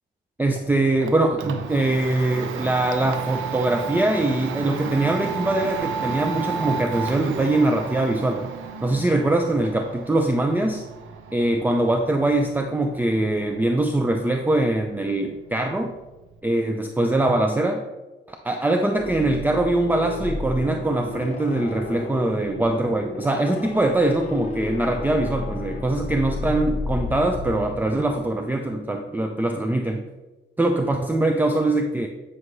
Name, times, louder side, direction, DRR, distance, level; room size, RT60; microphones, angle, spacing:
voice 1, 0.4-8.5 8.8-10.8 11.3-15.9 16.4-17.8 18.3-30.0 30.6-32.1, right 2 dB, 10° right, 4 dB, 0.6 m, -22 dB
Domestic sounds home sounds, 0.6-16.4, right 6 dB, 85° right, 0.8 m, -34 dB
sound 1, 18.9-28.6, left 3 dB, 35° left, 1.2 m, -32 dB
9.5 x 5.5 x 3.2 m, 1.1 s
cardioid pair, 90°, 20 cm